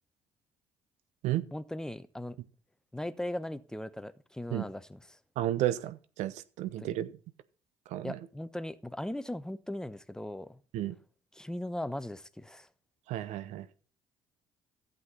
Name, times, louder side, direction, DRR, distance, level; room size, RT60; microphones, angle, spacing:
voice 1, 1.5-2.4 2.9-5.0 6.8-6.9 8.0-10.6 11.4-12.7, left 1 dB, 5° left, 0.9 m, -38 dB
voice 2, 5.4-7.1 7.9-8.2 10.7-11.0 13.1-13.8, right 13 dB, 70° right, 0.8 m, -32 dB
12.0 x 8.0 x 4.1 m
hypercardioid pair, 55°, 12 cm